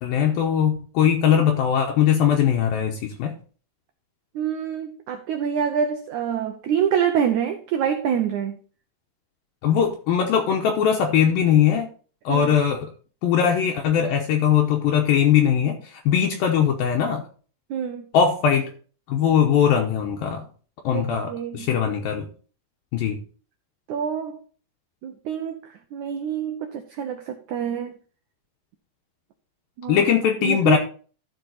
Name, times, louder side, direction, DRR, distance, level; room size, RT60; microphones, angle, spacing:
voice 1, 0.0-3.3 9.6-11.9 12.3-12.9 13.2-17.2 18.1-18.7 19.1-20.4 20.8-22.3 22.9-23.2 29.9-30.8, left 8 dB, 75° left, 2 dB, 2.5 m, -20 dB
voice 2, 4.3-8.6 12.3-12.5 17.7-18.1 20.9-21.7 23.9-24.4 25.0-27.9 29.8-30.0 30.4-30.8, right 8 dB, 85° right, 5 dB, 1.7 m, -26 dB
12.5 x 5.5 x 4.1 m, 0.40 s
omnidirectional pair, 4.5 m